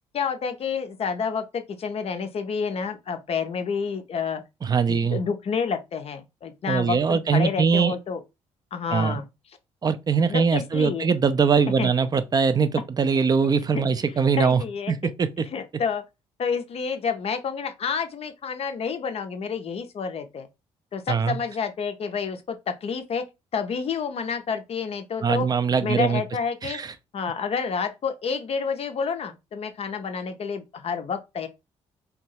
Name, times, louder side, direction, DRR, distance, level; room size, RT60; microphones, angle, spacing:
voice 1, 0.1-4.4 4.9-8.2 8.7-9.3 10.3-11.1 11.8-11.9 13.7-13.8 14.1-15.1 15.5-16.0 16.4-20.5 20.9-23.3 23.5-25.5 25.8-26.8 27.1-31.5, left 6 dB, 40° left, 0.5 m, -29 dB
voice 2, 4.6-5.2 6.7-7.9 8.9-9.2 9.8-14.6 14.9-15.4 21.1-21.4 25.2-26.2 26.6-26.9, right 5 dB, 25° right, 0.4 m, -22 dB
2.6 x 2.2 x 2.9 m
figure-of-eight pair, 45°, 15 cm